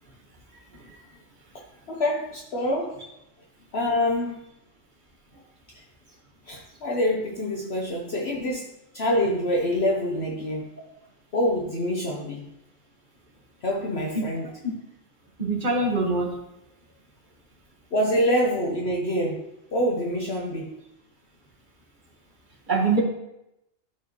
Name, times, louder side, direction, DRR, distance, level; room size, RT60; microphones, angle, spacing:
voice 1, 1.5-3.0 3.7-4.4 5.7-5.8 6.5-8.7 8.9-10.6 11.3-12.4 13.6-14.5 17.9-19.5 19.7-20.8, equal, 55° left, -1 dB, 1.1 m, -26 dB
voice 2, 15.4-16.3 22.7-23.0, right 3 dB, 35° right, -1 dB, 1.6 m, -23 dB
12.5 x 4.7 x 3.0 m, 0.85 s
omnidirectional pair, 1.4 m